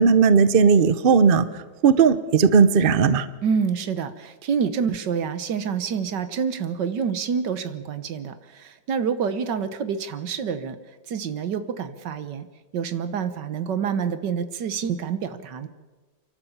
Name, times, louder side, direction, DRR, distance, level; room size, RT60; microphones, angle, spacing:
voice 1, 0.0-1.5 1.8-3.3, right 5 dB, 50° right, 14 dB, 0.6 m, -16 dB
voice 2, 3.4-10.8 11.1-12.5 12.7-15.7, right 6 dB, 70° right, 12 dB, 1.7 m, -27 dB
29.5 x 12.0 x 7.2 m, 1.3 s
omnidirectional pair, 2.0 m